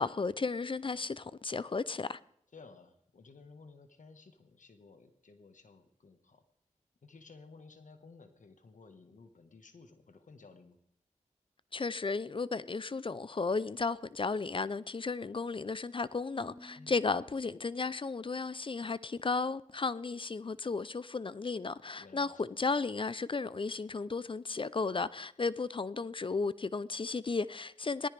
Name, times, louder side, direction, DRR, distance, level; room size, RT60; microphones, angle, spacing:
voice 1, 0.0-2.2 11.7-28.1, left 4 dB, 40° left, 0.5 m, -34 dB
voice 2, 2.5-6.4 7.0-10.8 16.8-17.0 21.9-22.4, left 4 dB, 75° left, 1.4 m, -56 dB
Marimba xylophone / Wood, 16.3-18.5, left 1 dB, 55° left, 7.7 m, -56 dB
18.5 x 14.0 x 3.4 m
wide cardioid pair, 60°, 13 cm